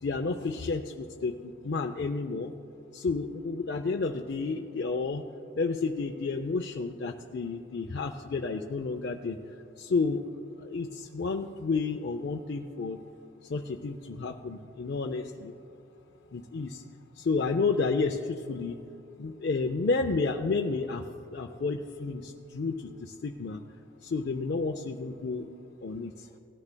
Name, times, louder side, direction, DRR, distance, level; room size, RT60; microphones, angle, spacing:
voice 1, 0.0-2.5 2.9-5.2 5.6-9.4 9.8-10.2 10.6-13.0 13.4-15.5 16.3-16.8 17.2-18.8 19.2-23.6 24.0-25.5 25.8-26.3, left 4 dB, 50° left, 3 dB, 0.4 m, -31 dB
18.0 x 13.0 x 2.2 m, 2.8 s
head